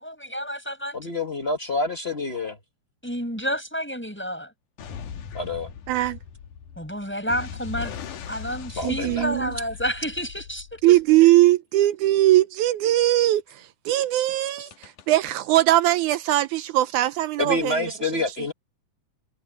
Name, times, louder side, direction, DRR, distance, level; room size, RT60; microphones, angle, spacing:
voice 1, 0.0-1.0 3.0-4.5 6.8-8.0 8.3-11.0, equal, 5° left, 7.6 m, -30 dB
voice 2, 0.9-2.6 5.3-5.7 8.8-9.3 14.6-14.7 17.4-18.5, left 2 dB, 55° left, 0.6 m, -27 dB
sound 1, 4.8-11.2 14.7-15.3, left 7 dB, 85° left, 3.1 m, -39 dB
voice 3, 5.9-6.2 8.8-9.5 10.8-17.9, right 15 dB, 80° right, 2.1 m, -20 dB
omnidirectional pair, 3.5 m